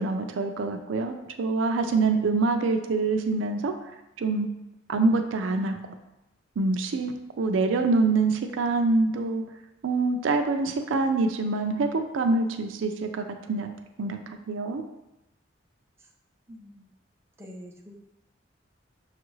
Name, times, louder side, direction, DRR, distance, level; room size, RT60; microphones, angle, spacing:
voice 1, 0.0-3.7 4.2-4.5 4.9-5.8 6.6-9.4 9.8-13.7 14.0-14.8, right 3 dB, 90° right, 6 dB, 0.4 m, -25 dB
voice 2, 16.5-16.9 17.4-17.9, equal, 15° right, -1 dB, 0.6 m, -45 dB
6.0 x 2.4 x 3.1 m, 0.94 s
head